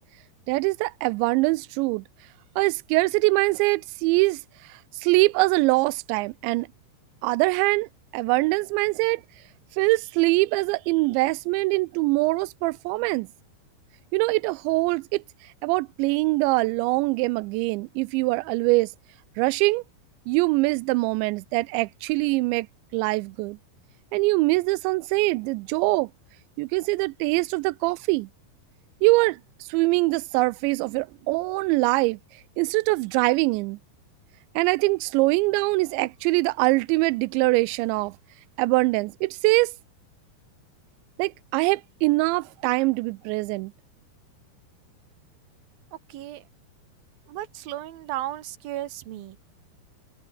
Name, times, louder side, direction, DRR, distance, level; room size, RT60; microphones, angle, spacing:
voice 1, 0.5-2.0 2.6-4.4 4.7-6.7 7.2-9.2 9.8-13.3 14.1-15.2 15.6-18.9 19.4-19.8 20.3-22.7 22.9-23.6 24.1-26.1 26.6-28.3 29.0-29.4 29.7-32.2 32.6-33.8 34.6-38.1 38.6-39.7 41.2-43.7, right 23 dB, 90° right, 2.9 m, -23 dB
voice 2, 45.9-46.4 47.3-49.4, right 14 dB, 65° right, 3.0 m, -35 dB
omnidirectional pair, 5.1 m